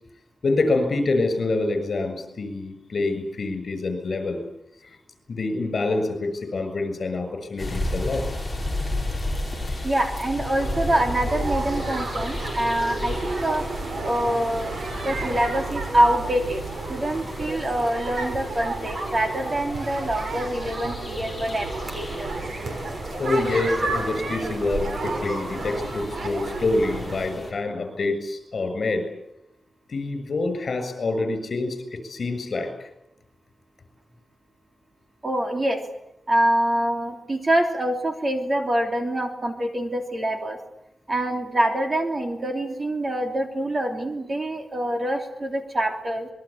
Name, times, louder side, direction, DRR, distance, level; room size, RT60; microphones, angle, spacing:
voice 1, 0.4-4.4 4.8-5.0 5.3-8.3 9.7-9.8 12.9-13.0 23.2-29.1 29.9-32.7, left 2 dB, 50° left, 8 dB, 7.1 m, -26 dB
sound 1, 7.6-27.5, left 1 dB, 5° left, 6.5 m, -34 dB
voice 2, 9.8-13.6 14.0-14.7 15.0-16.6 16.9-22.3 35.2-35.8 36.3-40.6 41.1-46.3, right 1 dB, 25° right, 4 dB, 3.1 m, -25 dB
sound 2, 10.6-27.3, right 3 dB, 75° right, 6.4 m, -31 dB
26.5 x 22.0 x 8.7 m, 0.83 s
wide cardioid pair, 175°, 0 cm